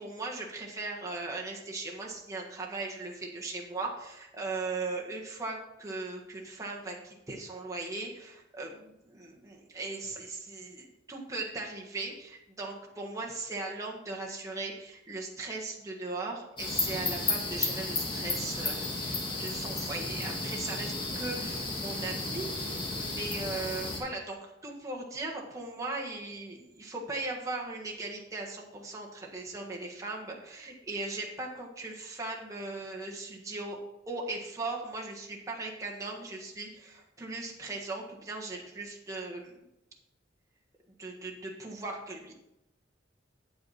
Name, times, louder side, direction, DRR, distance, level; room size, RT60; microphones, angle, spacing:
voice 1, 0.0-33.8 34.0-39.6 41.0-42.3, right 3 dB, 20° right, -2 dB, 1.5 m, -38 dB
sound 1, 16.6-24.0, left 2 dB, 25° left, 1.8 m, -33 dB
8.7 x 8.0 x 4.2 m, 0.88 s
head